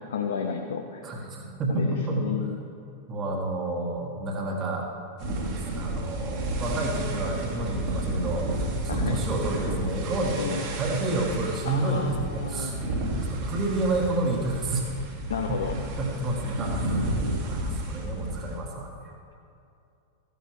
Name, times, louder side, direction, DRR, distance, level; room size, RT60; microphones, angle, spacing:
voice 1, 0.0-1.0 1.7-2.6 8.9-9.2 10.4-10.6 11.7-12.7 15.3-15.8, left 6 dB, 65° left, 4 dB, 0.6 m, -32 dB
voice 2, 1.0-2.3 3.1-4.9 5.3-8.7 8.9-12.7 13.3-14.9 15.5-15.6 16.0-19.0, right 2 dB, 30° right, -1 dB, 1.6 m, -30 dB
sound 1, 5.2-18.6, right 1 dB, 45° right, 1.8 m, -31 dB
14.0 x 10.5 x 3.2 m, 2.6 s
figure-of-eight pair, 90°, 0 cm